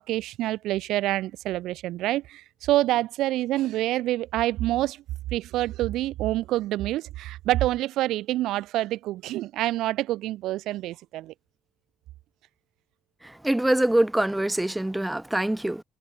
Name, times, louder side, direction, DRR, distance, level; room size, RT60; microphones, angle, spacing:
voice 1, 0.0-5.0 5.3-11.3, right 15 dB, 85° right, 7.1 m, -27 dB
voice 2, 13.4-15.8, right 1 dB, 10° right, 2.7 m, -24 dB
cardioid pair, 95°, 0 cm